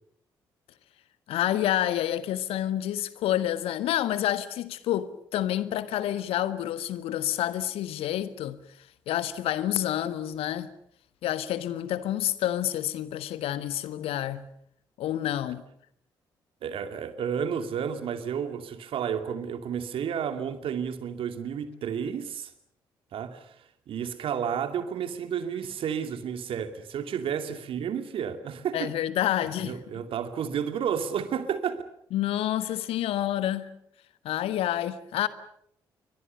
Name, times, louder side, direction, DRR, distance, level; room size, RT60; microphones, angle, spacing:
voice 1, 1.3-8.6 9.1-10.7 11.2-14.5 15.0-15.6 28.7-29.8 32.1-33.8 34.2-35.3, left 12 dB, 60° left, 1.5 m, -28 dB
voice 2, 16.6-22.5 23.1-23.5 23.9-28.9 29.6-31.8, right 8 dB, 55° right, 2.5 m, -31 dB
28.5 x 23.5 x 6.8 m
figure-of-eight pair, 40°, 11 cm